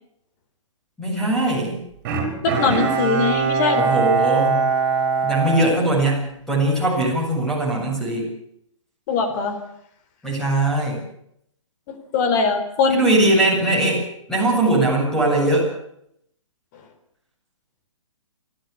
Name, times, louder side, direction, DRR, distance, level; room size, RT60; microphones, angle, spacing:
voice 1, 1.0-1.8 3.7-4.6 5.2-8.3 10.2-11.0 12.9-14.0 14.3-15.7, right 2 dB, 5° left, -2 dB, 7.7 m, -20 dB
Bowed string instrument, 2.0-6.5 7.0-7.1, right 5 dB, 35° right, 6.3 m, -22 dB
voice 2, 2.4-4.0 9.1-9.6 12.1-13.0, left 4 dB, 35° left, 6 dB, 4.1 m, -21 dB
28.5 x 12.5 x 8.5 m, 0.74 s
figure-of-eight pair, 135°, 17 cm